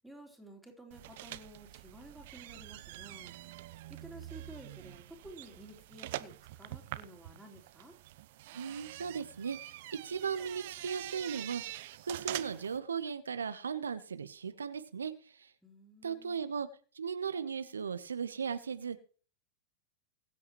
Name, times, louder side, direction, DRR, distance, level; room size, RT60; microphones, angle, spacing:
voice 1, 0.0-3.4 3.9-8.0 15.6-16.4, right 1 dB, ahead, 0 dB, 4.3 m, -53 dB
sound 1, 0.9-12.8, right 16 dB, 60° right, 0.7 m, -45 dB
voice 2, 8.5-9.8 10.0-11.8 12.1-15.5 16.0-16.7 16.9-19.0, right 6 dB, 80° right, 11 dB, 1.0 m, -37 dB
22.5 x 8.3 x 3.2 m, 0.40 s
hypercardioid pair, 95°, 0 cm